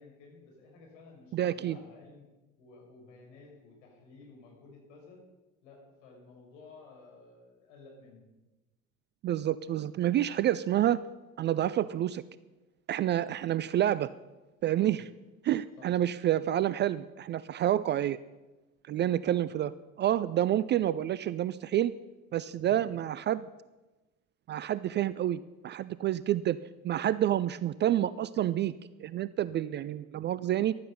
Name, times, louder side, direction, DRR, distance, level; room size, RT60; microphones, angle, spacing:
voice 1, 0.0-2.2 2.6-5.2 5.6-8.3 13.3-13.4 14.8-15.0 15.8-15.9 19.3-19.4 22.6-22.8, left 4 dB, 65° left, -1 dB, 5.4 m, -54 dB
voice 2, 1.3-1.8 9.2-11.0 11.4-12.2 12.9-14.1 14.6-15.1 15.4-18.2 18.9-19.7 20.0-21.9 22.3-23.5 24.5-26.6 26.8-28.7 29.0-30.7, right 12 dB, 30° right, 17 dB, 0.4 m, -28 dB
14.5 x 12.5 x 5.5 m, 1.1 s
figure-of-eight pair, 60°, 39 cm